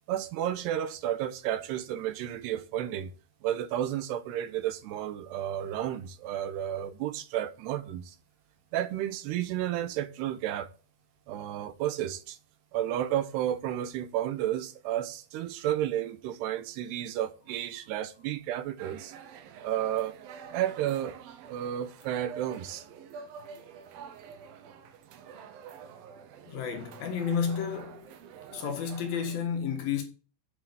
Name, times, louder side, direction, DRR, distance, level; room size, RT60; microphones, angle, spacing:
voice 1, 0.1-3.1 3.4-8.2 8.7-10.7 11.3-12.4 12.7-19.1 19.6-20.2 20.5-21.2 21.5-22.9, right 11 dB, 85° right, 3.1 m, -32 dB
sound 1, 18.8-29.4, right 7 dB, 70° right, 2.7 m, -48 dB
voice 2, 26.5-28.1 28.5-30.0, left 7 dB, 65° left, 3.5 m, -31 dB
8.7 x 7.4 x 8.5 m
omnidirectional pair, 4.6 m